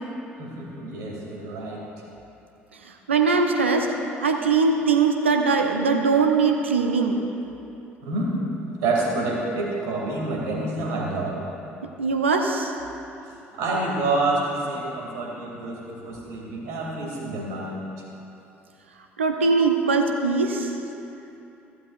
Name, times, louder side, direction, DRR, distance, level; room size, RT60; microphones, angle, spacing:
voice 1, 0.4-1.8 8.0-8.4 8.8-11.4 13.6-17.8, right 2 dB, 60° right, -3 dB, 2.6 m, -27 dB
voice 2, 3.1-3.9 4.2-7.2 12.0-12.7 19.2-20.7, right 4 dB, 80° right, 3 dB, 0.8 m, -21 dB
15.0 x 11.5 x 2.5 m, 2.8 s
figure-of-eight pair, 55°, 6 cm